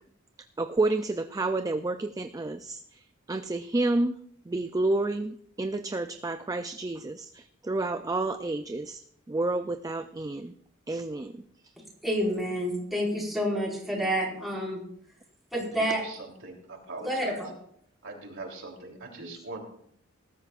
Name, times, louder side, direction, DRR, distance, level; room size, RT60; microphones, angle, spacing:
voice 1, 0.6-4.2 4.5-10.5 10.9-11.4, right 2 dB, 15° right, 9 dB, 0.4 m, -30 dB
voice 2, 12.0-14.8 15.5-16.0 17.0-17.5, equal, ahead, -4 dB, 5.2 m, -28 dB
voice 3, 15.7-17.4 18.0-19.6, right 3 dB, 65° right, 0 dB, 3.4 m, -41 dB
19.5 x 13.0 x 2.5 m, 0.68 s
head